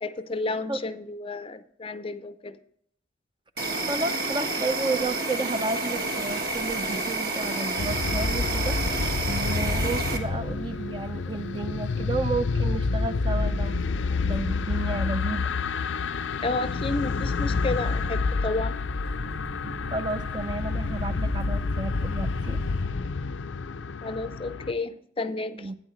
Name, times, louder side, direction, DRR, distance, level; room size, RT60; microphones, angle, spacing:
voice 1, 0.0-2.6 16.4-18.8 24.0-25.7, left 3 dB, 30° left, 12 dB, 0.5 m, -31 dB
Insect, 3.6-10.2, right 2 dB, 50° right, 1.4 m, -29 dB
voice 2, 3.9-9.0 9.3-13.9 14.2-15.5 19.8-22.6 25.5-25.8, right 3 dB, 25° right, 10 dB, 0.5 m, -32 dB
sound 1, 5.6-22.8, equal, 85° right, 3.6 m, -48 dB
sound 2, 7.8-24.7, left 4 dB, 80° left, 0.5 m, -28 dB
12.0 x 9.3 x 3.1 m, 0.69 s
head